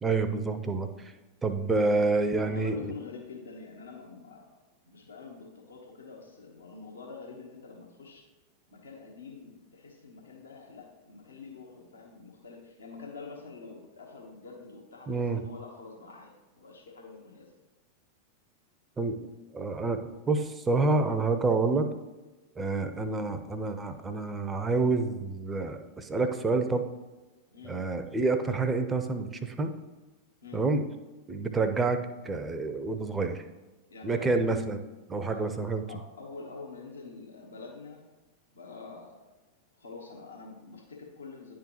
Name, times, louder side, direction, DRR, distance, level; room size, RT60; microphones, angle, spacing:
voice 1, 0.0-1.1 1.4-2.9 15.1-15.4 19.0-19.1 19.5-21.9 22.6-26.9 27.6-29.7 30.5-30.8 31.3-33.4 34.0-34.8 35.1-35.8, right 3 dB, 15° right, 8 dB, 0.6 m, -28 dB
voice 2, 1.7-2.0 2.3-8.3 8.7-17.5 27.5-27.8 30.4-30.6 33.9-34.3 35.3-35.5 35.9-38.0 38.5-39.3 39.8-41.6, left 4 dB, 70° left, 0 dB, 1.2 m, -46 dB
10.0 x 3.8 x 3.0 m, 1.2 s
figure-of-eight pair, 90°, 0 cm